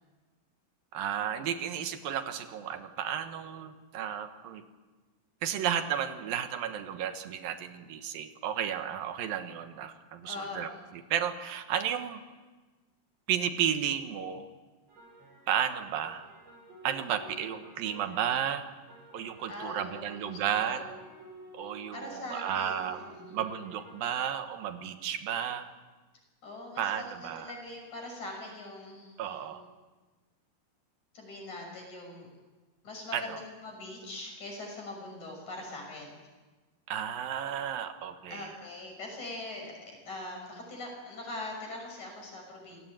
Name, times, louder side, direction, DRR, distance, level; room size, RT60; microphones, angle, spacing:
voice 1, 0.9-4.6 5.4-12.2 13.3-14.5 15.5-16.3 16.8-18.7 19.1-20.9 21.5-25.7 26.8-27.5 29.2-29.6 33.1-33.4 36.9-38.5, right 9 dB, 90° right, 8 dB, 3.2 m, -33 dB
voice 2, 10.2-10.7 19.5-20.2 20.5-20.9 21.9-23.3 26.4-29.5 31.1-32.3 32.8-36.2 38.3-42.8, left 2 dB, 55° left, 1 dB, 7.8 m, -42 dB
sound 1, 14.9-24.3, right 1 dB, 45° right, 6.6 m, -52 dB
27.0 x 17.5 x 9.0 m, 1.3 s
omnidirectional pair, 4.0 m